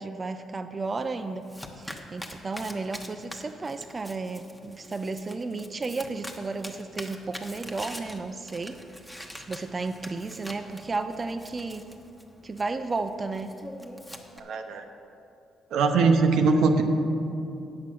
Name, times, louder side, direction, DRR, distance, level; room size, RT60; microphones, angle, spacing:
voice 1, 0.0-1.5 1.8-11.8 12.4-13.5, right 3 dB, 30° right, 8 dB, 0.4 m, -33 dB
Domestic sounds home sounds, 0.8-14.4, equal, 5° left, 1.0 m, -45 dB
voice 2, 14.4-14.8 15.7-16.8, right 4 dB, 80° right, 5 dB, 0.8 m, -21 dB
9.5 x 6.8 x 6.1 m, 2.7 s
cardioid pair, 90°, 0 cm